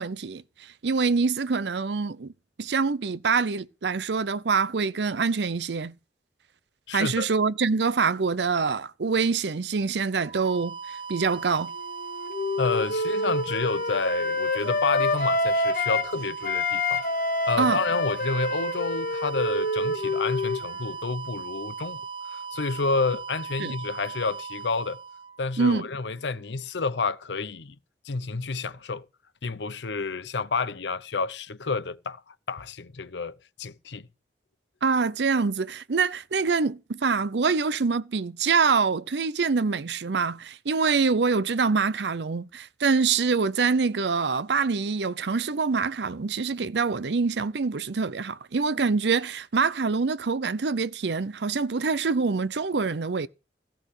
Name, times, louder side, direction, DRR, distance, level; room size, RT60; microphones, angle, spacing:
voice 1, 0.0-2.3 2.6-5.9 6.9-11.7 17.6-17.8 23.6-23.7 25.6-25.9 34.8-53.3, right 4 dB, 75° right, 0.6 m, -25 dB
voice 2, 6.9-7.3 12.6-17.0 17.5-22.0 22.3-25.0 25.4-27.8 28.0-29.1 29.4-34.1, left 4 dB, 80° left, 0.8 m, -30 dB
sound 1, 10.1-25.9, right 5 dB, 35° right, 2.3 m, -38 dB
Wind instrument woodwind instrument, 11.7-16.1 16.4-20.9, left 2 dB, 50° left, 1.9 m, -27 dB
15.5 x 5.9 x 8.2 m
head